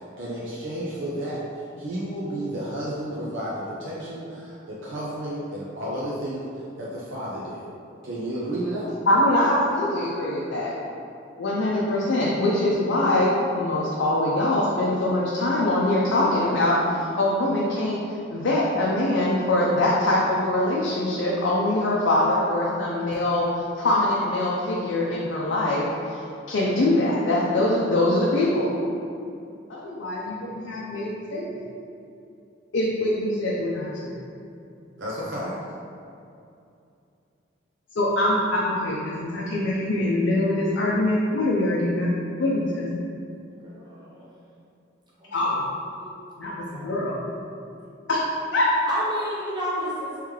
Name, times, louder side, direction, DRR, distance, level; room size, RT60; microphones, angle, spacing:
voice 1, 0.2-6.4 6.8-7.7 8.0-8.9 35.0-35.5, right 1 dB, 75° right, -7 dB, 0.6 m, -32 dB
voice 2, 9.1-10.7 11.4-18.0 18.3-26.2 26.5-28.7 29.7-31.5 32.7-34.1 38.0-42.1 42.4-43.0 45.3-45.7 46.4-47.2 48.1-48.2 48.5-48.7, left 1 dB, 70° left, -5 dB, 0.5 m, -23 dB
voice 3, 43.5-44.3 45.2-45.6 45.9-46.1 46.4-47.3 48.9-50.2, equal, 20° right, -7 dB, 0.8 m, -32 dB
3.6 x 3.1 x 3.2 m, 2.6 s
head